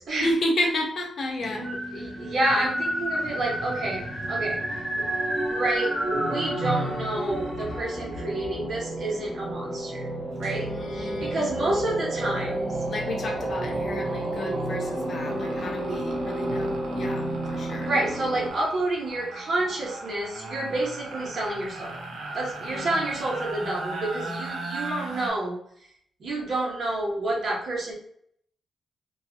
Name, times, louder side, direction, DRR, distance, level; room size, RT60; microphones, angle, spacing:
voice 1, 0.2-1.7 10.6-11.6 12.9-17.9 22.7-23.0, left 1 dB, 50° left, 2 dB, 0.5 m, -31 dB
sound 1, 1.4-18.5, right 1 dB, 5° left, 1.0 m, -30 dB
voice 2, 1.5-4.6 5.0-5.1 5.5-10.1 10.4-12.8 17.8-22.0 22.3-25.6 26.2-27.9, right 2 dB, 55° right, -2 dB, 0.9 m, -29 dB
sound 2, 10.4-10.6 10.9-25.3, right 2 dB, 90° right, 0.6 m, -38 dB
2.8 x 2.3 x 2.8 m, 0.66 s
wide cardioid pair, 135°, 0 cm